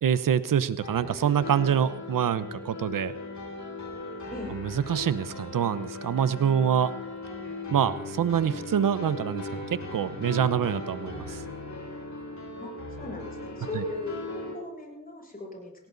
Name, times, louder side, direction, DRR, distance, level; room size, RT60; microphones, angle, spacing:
voice 1, 0.0-3.1 4.5-6.9 7.7-11.4 13.7-13.8, right 8 dB, 70° right, 14 dB, 1.1 m, -26 dB
sound 1, 0.8-14.5, left 3 dB, 55° left, 6.1 m, -38 dB
voice 2, 12.6-14.2 14.5-15.7, left 2 dB, 25° left, -1 dB, 7.9 m, -37 dB
18.5 x 17.0 x 4.1 m, 0.86 s
cardioid pair, 60°, 34 cm